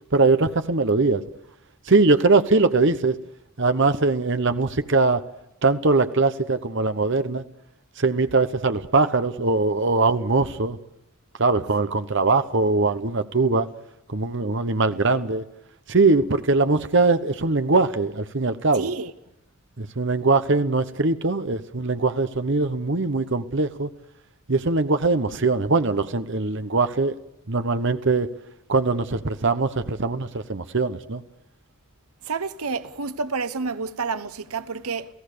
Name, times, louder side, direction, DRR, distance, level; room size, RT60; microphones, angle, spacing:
voice 1, 0.1-1.2 1.9-3.2 3.6-5.2 5.6-7.4 8.0-10.8 11.4-13.7 14.1-15.4 15.9-18.9 19.8-23.9 24.5-27.2 27.5-28.3 28.7-31.2, right 3 dB, 55° right, 1.1 m, -21 dB
voice 2, 18.7-19.1 32.3-35.1, right 4 dB, 90° right, 1.0 m, -29 dB
29.0 x 17.0 x 6.8 m
head